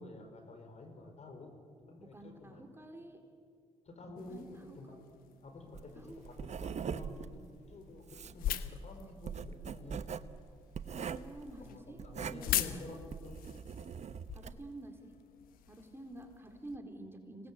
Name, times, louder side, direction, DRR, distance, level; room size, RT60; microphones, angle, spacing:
voice 1, 0.0-1.5 1.8-2.6 3.8-5.0 5.4-10.0 11.6-13.4, left 2 dB, 45° left, 4 dB, 4.8 m, -50 dB
voice 2, 2.0-3.2 4.3-5.0 5.9-6.2 11.1-12.0 12.3-12.8 14.3-15.1 15.7-17.5, right 1 dB, 15° right, 3 dB, 4.0 m, -49 dB
sound 1, 4.2-16.8, left 12 dB, 70° left, 1.0 m, -43 dB
Writing, 5.7-14.7, right 6 dB, 50° right, 1.0 m, -42 dB
26.0 x 19.0 x 8.4 m, 2.2 s
hypercardioid pair, 50°, 15 cm